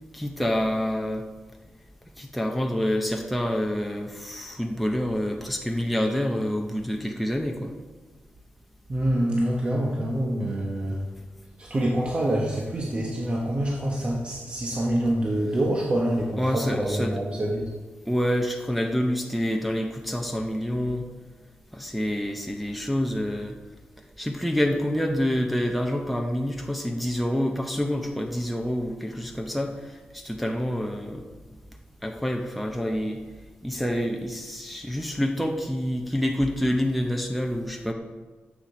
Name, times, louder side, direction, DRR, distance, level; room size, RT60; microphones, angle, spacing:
voice 1, 0.1-1.2 2.2-7.7 16.4-17.2 18.1-21.1 21.7-23.5 24.2-29.7 30.1-31.2 32.0-33.2 33.6-37.9, equal, ahead, 2 dB, 0.6 m, -27 dB
voice 2, 8.9-11.0 11.6-17.6, right 1 dB, 30° right, -2 dB, 1.0 m, -26 dB
7.3 x 7.3 x 6.1 m, 1.3 s
wide cardioid pair, 155°, 4 cm